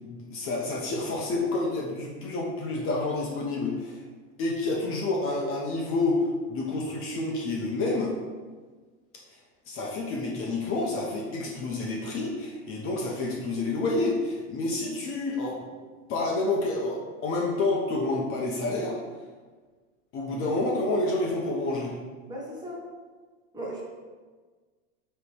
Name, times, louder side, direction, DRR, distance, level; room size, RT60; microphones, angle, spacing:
voice 1, 0.0-4.0 4.4-8.2 9.7-15.6 16.1-19.0 20.1-21.9, left 2 dB, 35° left, -2 dB, 1.1 m, -29 dB
voice 2, 22.3-22.8 23.5-23.8, right 1 dB, 10° right, -5 dB, 1.7 m, -36 dB
8.2 x 3.4 x 4.8 m, 1.4 s
supercardioid pair, 140°, 37 cm